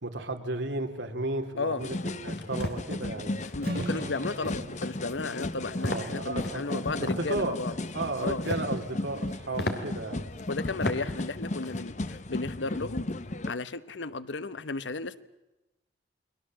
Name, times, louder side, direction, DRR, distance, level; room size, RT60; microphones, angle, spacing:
voice 1, 0.0-3.4 5.7-7.6 7.9-10.3, right 2 dB, 75° right, 4 dB, 2.7 m, -34 dB
sound 1, 1.8-13.5, left 2 dB, 40° left, 0.8 m, -35 dB
sound 2, 2.3-2.8 3.4-3.5 3.8-4.1 4.4-4.7 5.1-5.4 5.8-6.1 6.4-7.2 8.2-8.7 9.1-9.2 9.6-9.8 10.4-10.5 10.8-11.0 11.4-11.7, left 1 dB, 60° left, 2.6 m, -34 dB
voice 2, 3.5-7.7 8.2-8.4 10.5-13.1 13.5-15.2, left 3 dB, 80° left, 15 dB, 1.0 m, -34 dB
Strum, 3.6-7.7, right 1 dB, 60° right, 5.3 m, -42 dB
29.5 x 21.5 x 7.5 m, 0.99 s
head